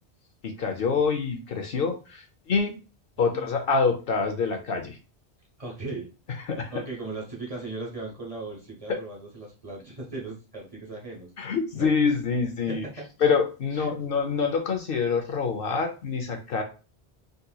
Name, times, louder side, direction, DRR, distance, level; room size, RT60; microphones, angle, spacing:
voice 1, 0.4-2.7 3.2-5.0 6.4-6.8 11.4-12.8 13.2-16.6, left 5 dB, 65° left, 4 dB, 0.8 m, -26 dB
voice 2, 3.2-3.5 5.6-6.1 6.7-11.3 11.7-11.9 12.7-13.1 13.8-13.9, right 3 dB, 35° right, -2 dB, 1.0 m, -37 dB
3.8 x 2.8 x 2.3 m, 0.33 s
omnidirectional pair, 1.1 m